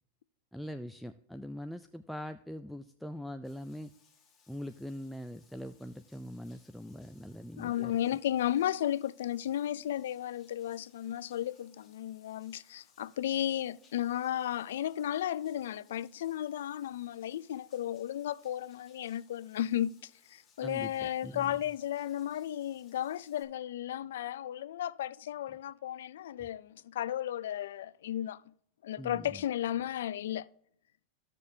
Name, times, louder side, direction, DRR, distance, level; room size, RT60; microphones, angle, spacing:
voice 1, 0.5-3.9 4.5-8.0 20.6-21.6 26.4-26.5 29.0-29.4, equal, ahead, 0.4 m, -42 dB
Bathtub (filling or washing), 3.4-23.4, left 6 dB, 20° left, 2.5 m, -67 dB
voice 2, 7.6-28.4 28.8-30.5, left 11 dB, 85° left, 0.4 m, -34 dB
15.0 x 6.7 x 2.8 m
supercardioid pair, 140°, 0 cm